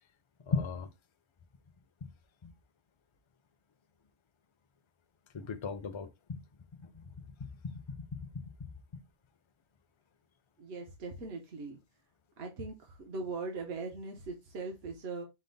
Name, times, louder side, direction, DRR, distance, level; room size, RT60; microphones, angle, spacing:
voice 1, 0.5-0.9 2.4-2.5 5.3-6.4 6.7-7.1 7.6-9.0, left 4 dB, 40° left, 0.4 m, -38 dB
voice 2, 10.6-11.8 12.4-15.2, right 3 dB, 70° right, 1.1 m, -40 dB
5.3 x 2.0 x 3.8 m
omnidirectional pair, 1.1 m